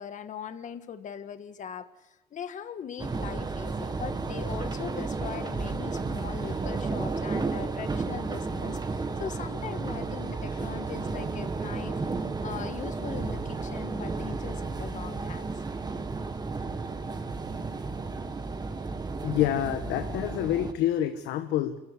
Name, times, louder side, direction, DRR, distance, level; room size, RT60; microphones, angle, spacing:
voice 1, 0.0-12.0 12.4-15.5, left 8 dB, 45° left, 9 dB, 1.6 m, -40 dB
sound 1, 3.0-20.7, right 3 dB, 25° right, 1.8 m, -33 dB
voice 2, 19.2-21.8, left 12 dB, 85° left, 8 dB, 1.3 m, -27 dB
28.0 x 14.5 x 9.8 m, 1.1 s
cardioid pair, 110°, 17 cm